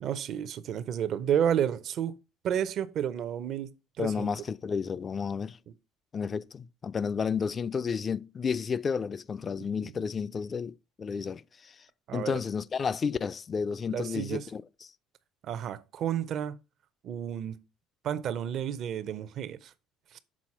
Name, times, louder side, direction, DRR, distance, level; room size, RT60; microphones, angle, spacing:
voice 1, 0.0-2.2 2.4-4.3 9.8-9.9 12.1-12.4 13.9-14.5 15.4-16.5 17.0-17.6 18.0-19.7 20.1-20.2, right 9 dB, 60° right, 0.5 m, -31 dB
voice 2, 4.0-5.6 6.1-11.8 12.1-14.9, left 6 dB, 35° left, 0.3 m, -32 dB
6.2 x 4.0 x 4.2 m
supercardioid pair, 75°, 0 cm